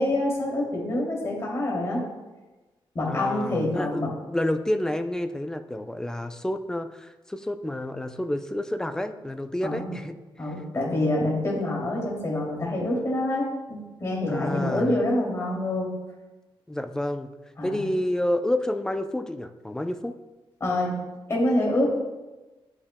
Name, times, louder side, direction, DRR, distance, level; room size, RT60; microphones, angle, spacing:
voice 1, 0.0-2.0 2.9-4.1 9.6-9.9 10.4-15.9 17.6-17.8 20.6-21.0 21.3-22.0, left 1 dB, 30° left, -3 dB, 2.7 m, -26 dB
voice 2, 3.1-10.2 14.3-14.9 16.7-17.3 17.6-20.2, left 1 dB, 5° left, 8 dB, 0.4 m, -29 dB
11.5 x 8.6 x 2.2 m, 1.1 s
wide cardioid pair, 135°, 9 cm